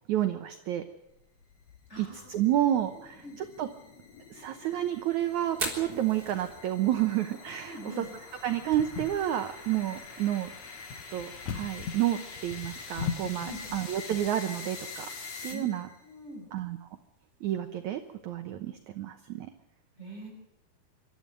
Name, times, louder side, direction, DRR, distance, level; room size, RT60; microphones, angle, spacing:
voice 1, 0.1-0.9 2.0-3.7 4.3-8.0 8.4-10.5 11.1-15.1 15.4-15.9 16.5-16.9 17.4-19.5, right 12 dB, 70° right, 8 dB, 1.9 m, -30 dB
sound 1, 1.2-16.0, left 4 dB, 45° left, 3.2 m, -46 dB
voice 2, 1.9-2.3 3.2-3.4 7.7-8.1 13.4-13.8 15.5-15.7 16.0-16.4 20.0-20.3, equal, 15° left, 0 dB, 6.9 m, -42 dB
Fire, 5.5-19.3, right 2 dB, 25° right, 3.8 m, -47 dB
sound 2, 8.0-14.3, left 6 dB, 75° left, 1.6 m, -40 dB
26.0 x 13.0 x 9.1 m, 0.87 s
omnidirectional pair, 4.4 m